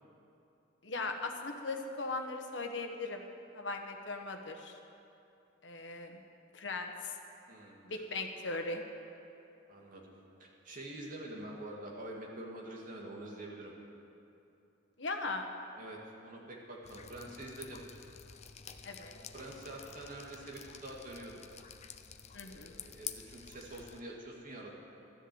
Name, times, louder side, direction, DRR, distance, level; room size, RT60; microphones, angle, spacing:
voice 1, 0.8-3.3 3.5-4.7 5.6-6.2 6.5-7.2 7.8-8.8 15.0-15.5 18.8-19.2 22.3-22.8, left 3 dB, 70° left, 4 dB, 1.3 m, -39 dB
voice 2, 7.5-8.0 9.7-10.1 10.4-13.7 15.8-17.8 19.3-21.5 22.4-24.7, right 1 dB, 45° right, -2 dB, 2.3 m, -46 dB
Drip, 16.8-24.0, left 8 dB, 35° left, 0.6 m, -49 dB
14.0 x 10.0 x 7.9 m, 2.8 s
head